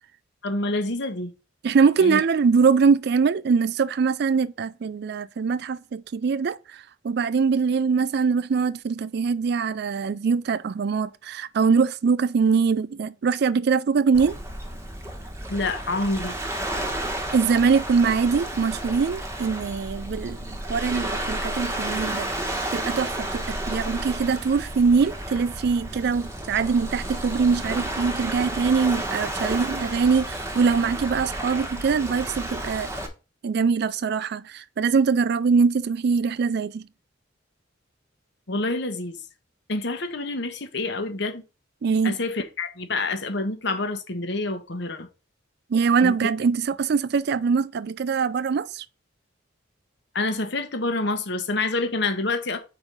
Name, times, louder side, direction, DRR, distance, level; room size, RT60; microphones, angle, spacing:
voice 1, 0.4-1.3 2.0-2.2 15.5-16.4 38.5-39.2 39.7-41.4 42.0-45.1 46.0-46.1 50.1-52.6, left 2 dB, 60° left, 1.1 m, -27 dB
voice 2, 1.6-14.4 17.3-22.3 22.7-32.9 33.4-36.9 41.8-42.1 45.7-48.8, right 5 dB, 55° right, 0.4 m, -23 dB
Waves surf, 14.1-33.1, right 1 dB, 15° right, 1.1 m, -32 dB
5.0 x 4.4 x 5.4 m
head